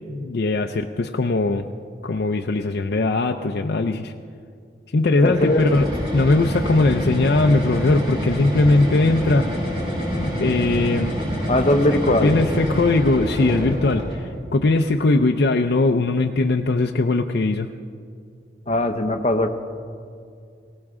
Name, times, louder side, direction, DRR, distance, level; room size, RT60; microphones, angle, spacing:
voice 1, 0.0-1.7 2.0-4.1 4.9-9.5 10.2-11.2 12.0-17.7, left 2 dB, 65° left, 3 dB, 0.5 m, -20 dB
voice 2, 5.2-5.6 11.5-12.4 18.7-19.5, left 1 dB, 35° left, 7 dB, 0.8 m, -20 dB
sound 1, 5.2-14.3, equal, 30° right, 4.9 m, -26 dB
19.0 x 17.5 x 3.6 m, 2.3 s
head